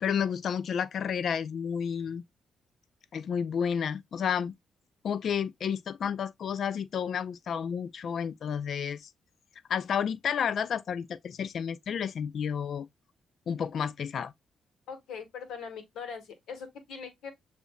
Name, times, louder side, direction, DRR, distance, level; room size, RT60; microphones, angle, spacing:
voice 1, 0.0-2.2 3.1-4.5 5.0-9.1 9.7-12.9 13.5-14.3, left 7 dB, 65° left, 0.4 m, -31 dB
voice 2, 14.9-17.3, left 6 dB, 80° left, 1.5 m, -41 dB
6.8 x 2.7 x 2.3 m
supercardioid pair, 65°, 0 cm